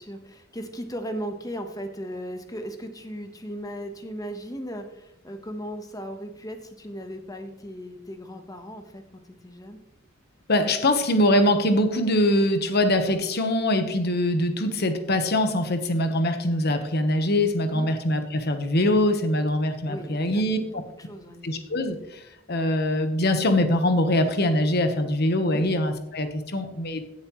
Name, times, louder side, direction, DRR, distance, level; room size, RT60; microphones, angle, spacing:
voice 1, 0.0-9.8 17.7-17.9 19.9-21.4, equal, 20° left, 6 dB, 1.2 m, -37 dB
voice 2, 10.5-20.8 21.4-22.2 22.5-27.0, left 1 dB, 55° left, 7 dB, 1.2 m, -23 dB
16.5 x 7.3 x 3.2 m, 0.83 s
head